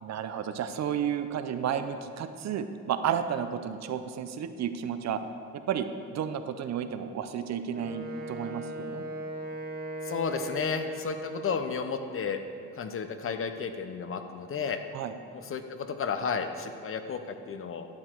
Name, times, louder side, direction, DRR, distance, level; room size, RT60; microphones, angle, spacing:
voice 1, 0.0-5.2 5.5-9.0 14.9-15.1, right 8 dB, 60° right, 9 dB, 0.7 m, -32 dB
Wind instrument woodwind instrument, 7.7-11.7, right 1 dB, 30° right, 1.5 m, -38 dB
voice 2, 10.0-12.4 12.8-14.8 15.3-17.9, left 6 dB, 45° left, 8 dB, 0.8 m, -32 dB
11.5 x 6.6 x 4.6 m, 2.4 s
cardioid pair, 90°, 30 cm